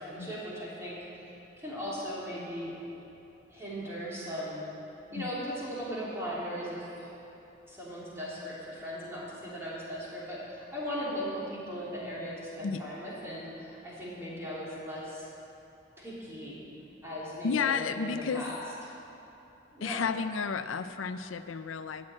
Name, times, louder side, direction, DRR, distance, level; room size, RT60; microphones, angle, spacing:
voice 1, 0.0-2.7 3.5-4.7 5.1-7.1 7.6-15.3 16.0-16.6 17.0-18.6 19.7-20.1, equal, 15° right, -8 dB, 3.5 m, -38 dB
voice 2, 17.4-18.5 19.8-22.1, left 5 dB, 80° left, 11 dB, 0.5 m, -32 dB
13.5 x 7.6 x 8.7 m, 2.9 s
head